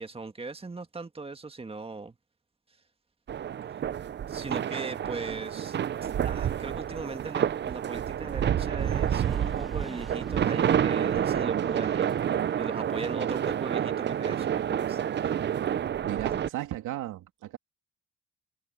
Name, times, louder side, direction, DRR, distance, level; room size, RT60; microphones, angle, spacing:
voice 1, 0.0-2.1 4.3-12.2 12.6-15.2, right 3 dB, 20° right, 1.7 m, -39 dB
sound 1, 3.3-16.5, right 9 dB, 35° right, 0.5 m, -29 dB
sound 2, 8.8-13.9, equal, ahead, 1.9 m, -48 dB
voice 2, 16.0-17.6, right 14 dB, 90° right, 2.9 m, -36 dB
cardioid pair, 90°, 30 cm